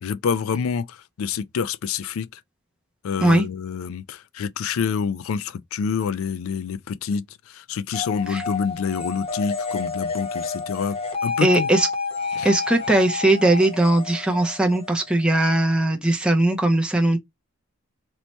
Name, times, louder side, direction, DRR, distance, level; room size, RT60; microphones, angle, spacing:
voice 1, 0.0-2.3 3.0-11.7 12.3-12.5, left 6 dB, 75° left, 0.3 m, -27 dB
sound 1, 7.9-15.4, left 4 dB, 25° left, 0.8 m, -30 dB
voice 2, 11.4-11.9 12.4-17.2, right 1 dB, 5° right, 0.4 m, -19 dB
3.0 x 2.2 x 4.0 m
head